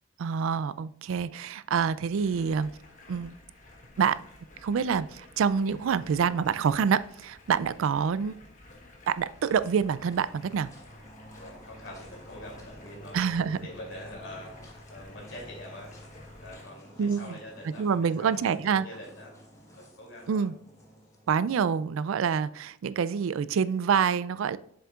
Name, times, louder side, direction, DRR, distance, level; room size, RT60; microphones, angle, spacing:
voice 1, 0.2-2.7 3.1-3.3 4.0-4.2 4.6-8.3 9.1-10.7 13.1-13.6 17.0-17.4 17.8-18.9 20.3-20.5 21.3-24.6, right 6 dB, 75° right, 16 dB, 0.3 m, -26 dB
Stream, 2.2-16.7, left 2 dB, 40° left, 1.3 m, -52 dB
sound 1, 8.8-22.1, equal, 15° left, 1.2 m, -50 dB
voice 2, 11.4-13.2 13.6-16.0 16.4-19.3 19.7-20.5, left 1 dB, 60° left, -2 dB, 3.0 m, -45 dB
7.4 x 6.9 x 2.4 m, 0.69 s
head